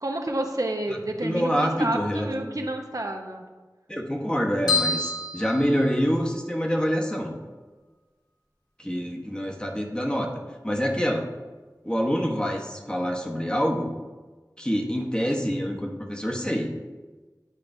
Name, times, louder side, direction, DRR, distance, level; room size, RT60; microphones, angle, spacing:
voice 1, 0.0-3.4, right 1 dB, 55° right, 2 dB, 0.7 m, -29 dB
voice 2, 1.2-2.6 3.9-7.3 8.8-10.3 10.6-11.3 11.8-13.9 14.6-16.7, equal, 15° left, 0 dB, 0.9 m, -26 dB
sound 1, 4.7-6.4, left 3 dB, 85° left, 1.9 m, -28 dB
8.9 x 4.8 x 2.6 m, 1.3 s
wide cardioid pair, 40°, 7 cm